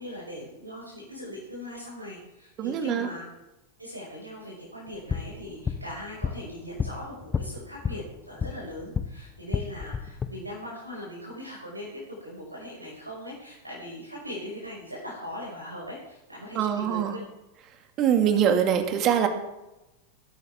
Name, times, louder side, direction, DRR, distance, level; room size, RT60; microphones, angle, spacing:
voice 1, 0.0-3.2 3.8-17.2, left 1 dB, 85° right, -5 dB, 5.6 m, -40 dB
voice 2, 2.6-3.1 16.5-17.2 18.0-19.3, right 9 dB, 35° right, 6 dB, 2.3 m, -23 dB
sound 1, 4.9-9.1 9.4-10.3, left 6 dB, 20° left, 1.0 m, -32 dB
20.0 x 12.5 x 3.7 m, 0.96 s
figure-of-eight pair, 90°, 0 cm